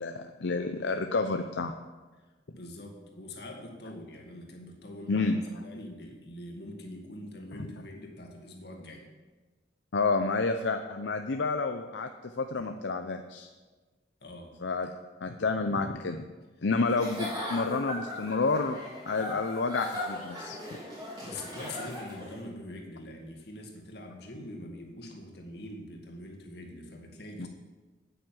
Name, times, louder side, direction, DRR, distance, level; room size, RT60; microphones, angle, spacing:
voice 1, 0.0-1.7 5.1-5.4 9.9-12.1 12.4-13.5 14.6-14.9 15.2-16.2 16.6-18.8 19.1-20.6 27.4-27.5, left 3 dB, 80° left, 6 dB, 0.6 m, -29 dB
voice 2, 2.2-9.1 14.2-14.5 16.6-16.7 20.8-20.9 21.2-27.5, left 1 dB, 60° left, 1 dB, 2.2 m, -44 dB
Giggle / Chuckle chortle, 16.9-22.4, left 1 dB, 20° right, 3.3 m, -38 dB
9.2 x 9.2 x 7.5 m, 1.3 s
head